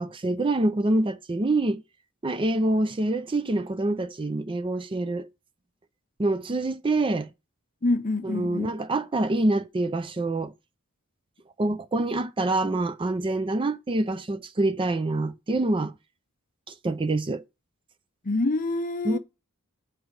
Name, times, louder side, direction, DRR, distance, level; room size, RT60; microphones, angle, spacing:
voice 1, 0.0-1.8 2.2-5.3 6.2-7.3 8.2-10.5 11.6-15.9 16.7-17.4 19.0-19.2, right 2 dB, 25° right, 0.5 m, -26 dB
voice 2, 7.8-8.7 18.2-19.2, left 2 dB, 40° left, 0.7 m, -26 dB
6.2 x 4.9 x 4.7 m
head